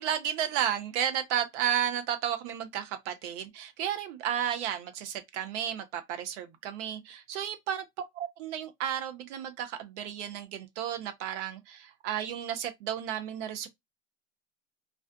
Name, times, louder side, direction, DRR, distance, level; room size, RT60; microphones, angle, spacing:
voice 1, 0.0-7.8 8.1-13.7, right 10 dB, 65° right, 0.7 m, -33 dB
2.5 x 2.1 x 2.3 m
hypercardioid pair, 95°, 38 cm